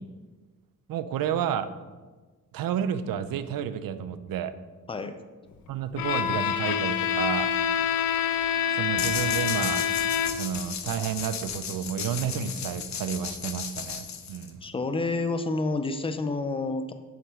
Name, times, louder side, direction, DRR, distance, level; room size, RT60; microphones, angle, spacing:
voice 1, 0.9-1.7 2.5-4.5 5.7-7.5 8.7-9.8 10.3-14.6, right 9 dB, 80° right, 12 dB, 0.5 m, -31 dB
Bowed string instrument, 6.0-10.6, left 9 dB, 90° left, 0.5 m, -26 dB
sound 1, 9.0-14.7, left 7 dB, 55° left, 0.7 m, -35 dB
voice 2, 14.6-16.9, left 3 dB, 15° left, 9 dB, 0.4 m, -29 dB
7.4 x 5.9 x 3.6 m, 1.3 s
cardioid pair, 125°, 34 cm